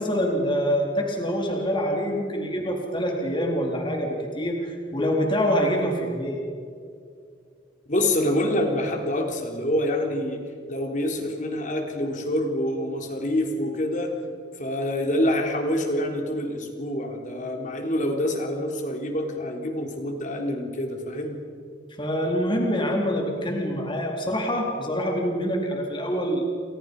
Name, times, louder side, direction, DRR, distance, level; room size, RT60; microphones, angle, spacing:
voice 1, 0.0-6.4 22.0-26.5, equal, 25° left, 0 dB, 3.8 m, -25 dB
voice 2, 7.9-10.4 10.7-14.1 14.6-21.4, left 1 dB, 40° left, 3 dB, 3.7 m, -26 dB
30.0 x 26.5 x 5.5 m, 2.3 s
head